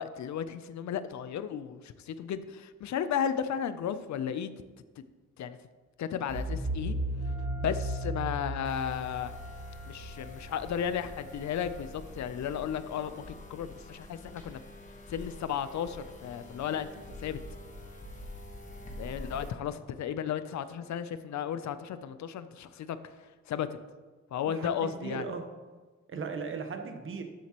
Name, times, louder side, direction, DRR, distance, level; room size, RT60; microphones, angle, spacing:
voice 1, 0.0-4.5 5.0-5.1 5.4-5.6 6.0-7.0 7.6-9.3 9.9-14.6 15.1-16.9 17.2-17.4 19.0-23.1 23.5-23.7 24.3-25.3, left 8 dB, 70° left, 12 dB, 0.5 m, -34 dB
sound 1, 6.3-11.2, right 1 dB, 70° right, 1.6 m, -35 dB
Wind instrument woodwind instrument, 7.2-11.8, right 1 dB, 10° right, 2.2 m, -51 dB
sound 2, 8.7-19.5, left 1 dB, 25° left, 1.2 m, -46 dB
voice 2, 24.6-25.4 26.1-27.2, right 5 dB, 45° right, 5 dB, 1.0 m, -37 dB
12.5 x 7.4 x 3.0 m, 1.3 s
wide cardioid pair, 175°, 30 cm